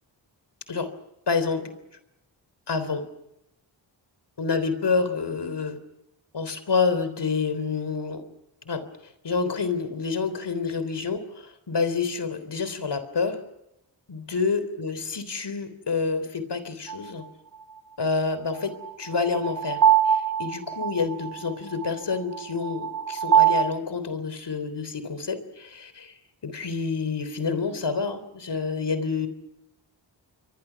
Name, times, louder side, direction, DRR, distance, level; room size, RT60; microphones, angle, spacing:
voice 1, 1.3-1.6 2.7-3.0 4.4-5.8 6.3-8.2 8.7-8.8 9.2-13.4 14.1-17.2 18.0-26.1 26.4-29.3, left 4 dB, 60° left, 12 dB, 3.6 m, -28 dB
sound 1, 16.9-17.0 18.8-23.6, right 9 dB, 50° right, 2.5 m, -23 dB
29.0 x 23.5 x 5.9 m, 0.84 s
cardioid pair, 50°, 45 cm